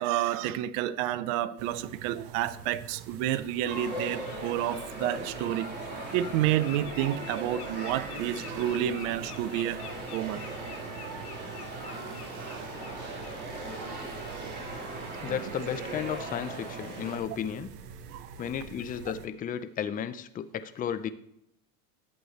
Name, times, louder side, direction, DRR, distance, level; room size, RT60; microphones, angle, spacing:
voice 1, 0.0-5.7 6.1-9.8 10.1-10.4 11.1-11.2 12.4-12.7 13.1-13.2 13.8-13.9 14.2-14.6 15.2-15.4 18.1-18.3, right 12 dB, 60° right, 0.8 m, -30 dB
sound 1, 1.6-19.3, right 7 dB, 85° right, 1.2 m, -46 dB
Bird, 3.4-3.5 4.0-4.4 4.6-13.4 13.7-13.9 14.3-14.4, left 10 dB, 90° left, 1.1 m, -48 dB
sound 2, 3.6-17.2, right 2 dB, 25° right, 4.2 m, -39 dB
voice 2, 15.2-17.7 18.4-21.1, left 9 dB, 20° left, 0.5 m, -34 dB
11.0 x 8.1 x 3.2 m
supercardioid pair, 115°, 44 cm